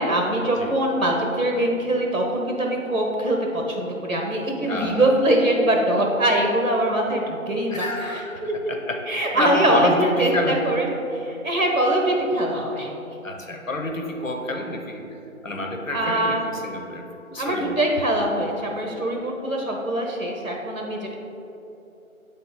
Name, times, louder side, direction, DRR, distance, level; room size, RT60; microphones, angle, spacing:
voice 1, 0.0-8.7 9.1-10.9 11.1-12.9 15.9-16.4 17.4-21.2, right 1 dB, 75° right, 0 dB, 1.2 m, -23 dB
voice 2, 4.7-5.1 7.7-8.4 8.7-9.0 9.3-10.8 13.2-15.2 15.4-17.8, left 1 dB, 65° left, 3 dB, 1.0 m, -28 dB
8.7 x 3.9 x 4.0 m, 3.0 s
figure-of-eight pair, 170°, 42 cm